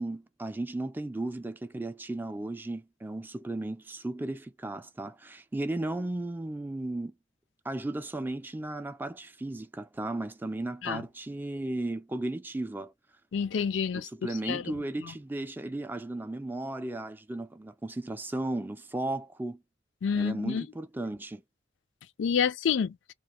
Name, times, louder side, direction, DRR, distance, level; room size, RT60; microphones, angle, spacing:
voice 1, 0.0-7.1 7.6-12.9 13.9-19.6 20.1-21.4, right 2 dB, 10° right, 0.3 m, -35 dB
voice 2, 13.3-14.1 14.5-14.6 20.0-20.7 22.2-23.0, left 7 dB, 75° left, 0.4 m, -28 dB
2.8 x 2.4 x 4.3 m
head